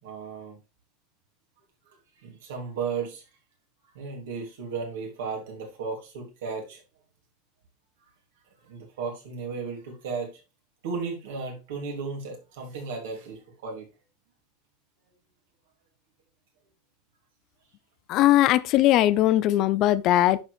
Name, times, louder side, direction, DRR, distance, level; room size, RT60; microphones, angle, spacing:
voice 1, 0.0-0.6 2.2-3.2 3.9-6.8 8.6-10.3 10.8-13.8, right 5 dB, 70° right, 3.2 m, -34 dB
voice 2, 18.1-20.4, left 14 dB, 50° left, 0.6 m, -20 dB
11.0 x 4.8 x 3.5 m
hypercardioid pair, 85°, 0 cm